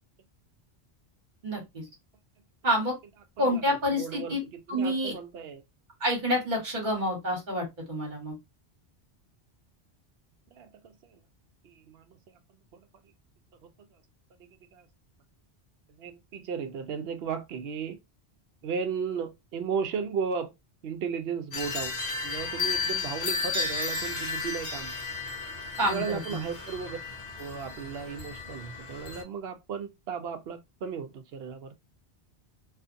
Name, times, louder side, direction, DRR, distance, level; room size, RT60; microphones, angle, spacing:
voice 1, 1.4-1.8 2.6-3.0 3.4-4.4 4.7-5.1 6.0-8.4 25.8-26.0 26.3-26.4, equal, 50° right, 1.4 m, -28 dB
voice 2, 3.4-5.6 10.5-11.2 11.6-12.4 12.7-12.9 13.6-13.9 14.4-14.9 15.9-18.0 18.6-20.5 20.8-24.9 25.8-27.0 27.4-31.7, right 6 dB, 70° right, 0.8 m, -35 dB
sound 1, 21.5-29.2, left 4 dB, 45° left, 0.8 m, -33 dB
2.5 x 2.4 x 2.5 m
omnidirectional pair, 1.1 m